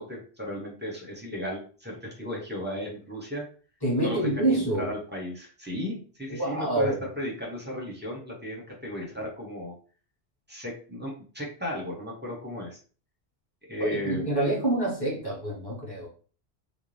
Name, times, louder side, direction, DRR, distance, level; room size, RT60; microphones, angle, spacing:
voice 1, 0.0-3.5 4.0-9.7 10.5-12.8 13.6-14.3, equal, 10° right, 0.6 m, -35 dB
voice 2, 3.8-4.9 6.4-7.0 13.8-16.1, right 1 dB, 25° left, 1.0 m, -26 dB
2.5 x 2.0 x 3.1 m
omnidirectional pair, 1.1 m